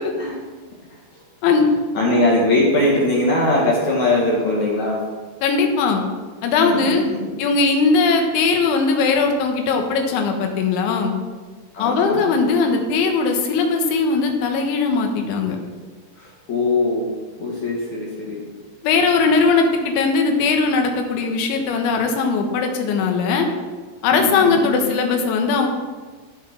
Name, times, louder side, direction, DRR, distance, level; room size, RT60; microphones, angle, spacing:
voice 1, 1.9-5.0 6.6-7.3 11.7-12.3 16.2-17.1 17.4-18.4 24.1-24.8, left 2 dB, 55° left, -4 dB, 2.3 m, -21 dB
voice 2, 5.4-6.0 6.4-7.1 7.4-11.1 11.8-15.6 18.8-23.5 24.0-25.7, left 4 dB, 80° left, 3 dB, 3.7 m, -19 dB
14.0 x 6.4 x 6.0 m, 1.4 s
omnidirectional pair, 5.4 m